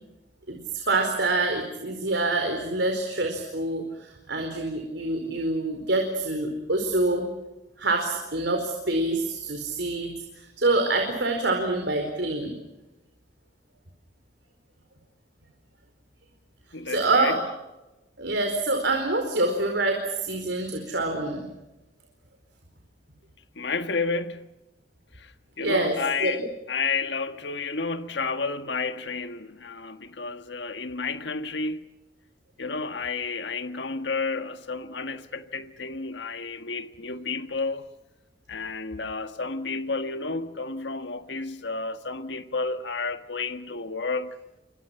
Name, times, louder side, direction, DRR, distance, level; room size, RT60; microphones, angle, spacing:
voice 1, 0.5-7.3 7.8-10.1 10.3-12.5 16.9-17.4 18.2-21.4 25.6-26.3, right 2 dB, 80° right, 4.5 m, -26 dB
voice 2, 16.7-17.4 23.5-24.5 25.1-31.9 32.6-37.9 38.5-44.4, left 4 dB, 80° left, 1.5 m, -31 dB
29.0 x 25.0 x 5.9 m
head